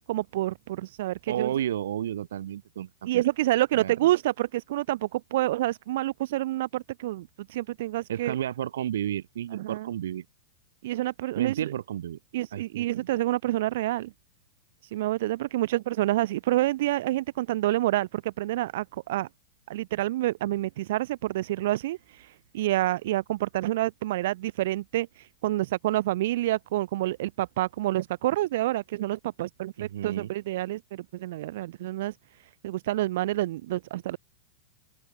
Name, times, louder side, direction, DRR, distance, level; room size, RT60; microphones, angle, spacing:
voice 1, 0.0-1.5 3.0-8.3 9.5-9.9 10.8-11.7 12.3-14.1 14.9-19.3 19.7-32.1 32.6-34.2, right 15 dB, 55° right, 0.8 m, -28 dB
voice 2, 1.3-3.2 3.7-4.1 8.1-10.2 11.3-12.2 12.5-13.1 29.8-30.3, right 11 dB, 90° right, 4.3 m, -32 dB
open air
supercardioid pair, 170°, 0 cm